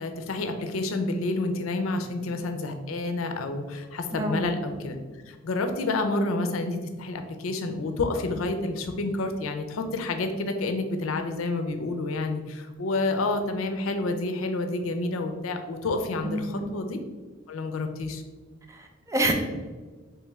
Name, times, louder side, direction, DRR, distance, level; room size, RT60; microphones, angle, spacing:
voice 1, 0.0-4.9 5.3-17.0 17.5-18.2, left 2 dB, 90° left, 6 dB, 0.5 m, -29 dB
voice 2, 4.1-4.5 16.2-16.6 18.7-19.3, right 2 dB, 15° right, 2 dB, 0.4 m, -28 dB
3.1 x 3.1 x 3.5 m, 1.3 s
head